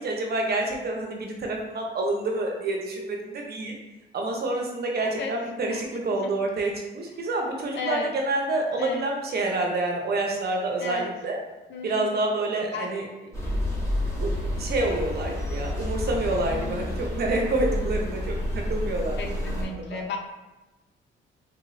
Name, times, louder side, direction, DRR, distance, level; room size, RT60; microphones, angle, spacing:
voice 1, 0.0-3.8 4.1-11.4 11.8-13.0 14.2-19.5 19.9-20.0, right 2 dB, 55° right, 1 dB, 0.8 m, -28 dB
voice 2, 5.0-5.3 5.7-5.8 7.8-8.1 8.8-9.0 10.8-11.1 11.7-12.2 12.7-12.9 19.2-20.2, left 4 dB, 65° left, 2 dB, 0.6 m, -33 dB
sound 1, 13.3-19.6, left 1 dB, 15° left, 1.2 m, -29 dB
3.5 x 2.9 x 2.6 m, 1.1 s
cardioid pair, 90°, 20 cm